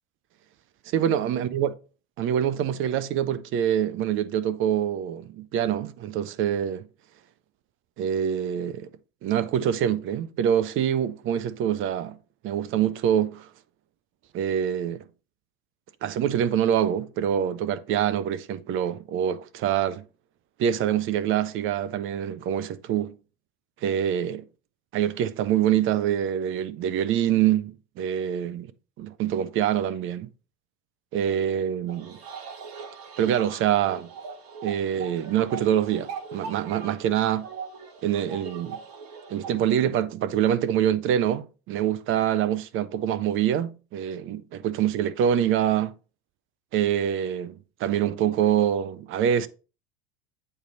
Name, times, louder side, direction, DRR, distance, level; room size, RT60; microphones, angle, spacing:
voice 1, 0.9-1.7 2.2-6.8 8.0-8.9 9.2-12.2 12.4-13.5 14.3-15.1 16.0-20.0 20.6-23.2 23.8-24.4 24.9-28.7 29.0-30.3 31.1-32.2 33.2-34.1 34.6-37.5 38.0-38.8 39.3-45.9 46.7-49.5, right 10 dB, 40° right, 0.7 m, -25 dB
sound 1, 31.9-39.8, right 5 dB, 60° right, 1.3 m, -40 dB
8.1 x 3.3 x 4.5 m
hypercardioid pair, 85°, 30 cm